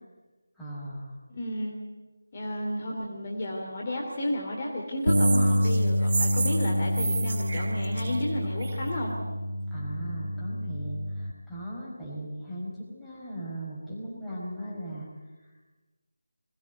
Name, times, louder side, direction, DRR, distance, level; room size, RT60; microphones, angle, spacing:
voice 1, 0.6-1.2 9.7-15.6, right 1 dB, ahead, -10 dB, 4.8 m, -38 dB
voice 2, 1.3-1.8 2.3-9.1, left 1 dB, 30° left, -1 dB, 2.9 m, -32 dB
sound 1, 5.1-8.9, right 3 dB, 40° right, 1.0 m, -33 dB
Bass guitar, 5.1-11.3, equal, 85° right, 1.7 m, -27 dB
21.5 x 18.0 x 8.3 m, 1.2 s
figure-of-eight pair, 160°, 0 cm